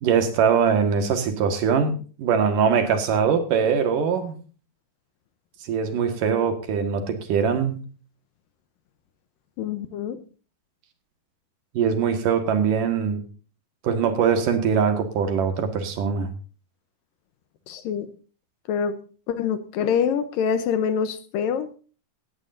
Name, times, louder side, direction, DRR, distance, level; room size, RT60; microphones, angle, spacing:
voice 1, 0.0-4.4 5.6-7.8 11.7-13.2 13.8-16.3, right 6 dB, 65° right, 3.0 m, -22 dB
voice 2, 9.6-10.2 17.7-18.1 18.7-21.7, left 7 dB, 75° left, 2.3 m, -25 dB
18.0 x 13.0 x 2.6 m
omnidirectional pair, 4.5 m